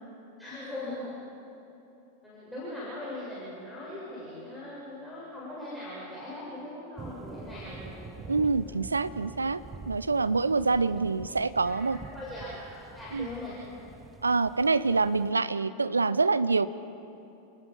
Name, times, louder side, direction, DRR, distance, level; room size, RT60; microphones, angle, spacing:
voice 1, 0.4-1.1 2.2-8.0 8.6-8.7 11.6-13.6, left 1 dB, 5° left, -9 dB, 7.1 m, -40 dB
sound 1, 7.0-15.3, right 4 dB, 15° right, 1.0 m, -46 dB
voice 2, 8.3-9.6 9.9-12.0 13.1-13.3 14.2-16.7, right 4 dB, 80° right, 15 dB, 0.6 m, -26 dB
30.0 x 19.5 x 5.4 m, 2.8 s
figure-of-eight pair, 90°, 0 cm